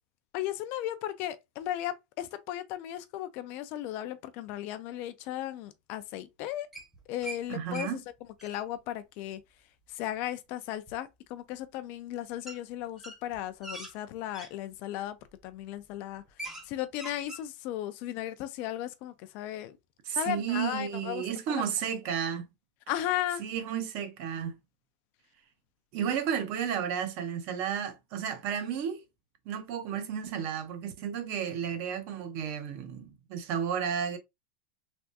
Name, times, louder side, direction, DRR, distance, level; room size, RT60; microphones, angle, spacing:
voice 1, 0.3-6.7 7.1-8.0 8.4-9.4 9.9-15.2 15.4-16.2 16.7-19.8 20.2-21.6 22.9-23.4, left 13 dB, 45° left, 0.3 m, -36 dB
sound 1, 6.7-7.4 7.7-7.9 8.2-8.6 10.9-11.0 12.5-12.6 13.0-14.5 15.2-15.4 15.8-15.9 16.2-16.7 16.9-17.4, right 2 dB, 10° right, 0.8 m, -42 dB
voice 2, 7.5-8.0 20.0-22.5 23.4-24.6 25.9-29.0 29.5-34.2, right 8 dB, 45° right, 0.7 m, -32 dB
3.4 x 2.4 x 2.6 m
supercardioid pair, 150°, 5 cm